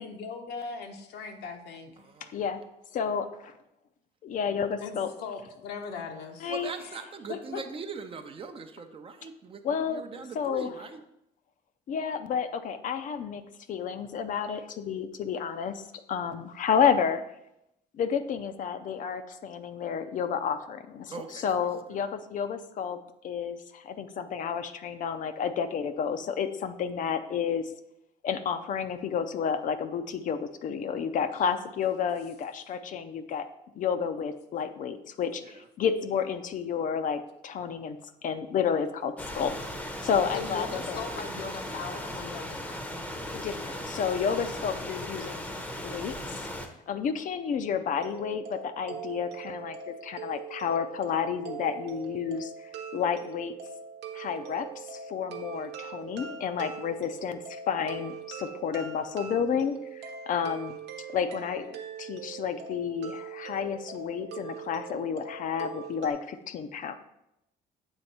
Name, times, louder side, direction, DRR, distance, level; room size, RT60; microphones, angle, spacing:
voice 1, 0.0-1.9 4.8-6.5 7.3-7.6 40.3-42.8 44.4-44.6, left 5 dB, 75° left, 4 dB, 0.9 m, -39 dB
voice 2, 2.0-2.4 6.5-11.0 21.1-22.0 35.4-35.7, right 5 dB, 35° right, 7 dB, 0.5 m, -41 dB
voice 3, 2.9-3.3 4.2-5.1 6.4-6.7 9.6-10.7 11.9-13.4 13.7-15.8 16.1-17.2 17.9-23.0 23.2-27.7 28.2-33.5 33.8-38.0 38.2-39.5 40.0-41.0 43.3-45.5 45.8-46.5 46.9-52.5 52.9-53.6 54.1-60.8 61.1-66.9, left 7 dB, 50° left, 10 dB, 0.5 m, -31 dB
sound 1, 39.2-46.7, left 1 dB, 10° left, 0.7 m, -37 dB
sound 2, 47.9-66.1, right 7 dB, 85° right, 0.9 m, -42 dB
8.0 x 3.4 x 4.1 m, 0.85 s
cardioid pair, 110°, 17 cm